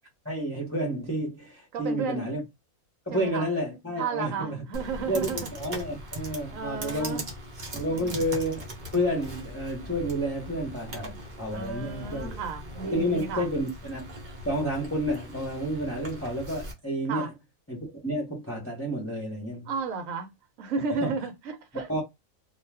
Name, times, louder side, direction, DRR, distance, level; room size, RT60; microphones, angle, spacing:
voice 1, 0.2-2.4 3.1-4.6 5.0-7.2 7.7-8.7 8.9-12.3 12.8-14.1 14.4-17.3 17.7-19.7 20.9-21.2 21.9-22.0, equal, 10° left, 0.8 m, -30 dB
voice 2, 1.7-2.3 3.1-3.5 4.0-5.5 6.5-7.3 7.9-8.2 11.5-13.5 17.1-17.3 19.7-20.3 20.6-21.9, right 5 dB, 70° right, 1.0 m, -33 dB
Computer keyboard, 4.7-16.7, equal, 40° right, 0.8 m, -40 dB
2.4 x 2.4 x 3.3 m
omnidirectional pair, 1.5 m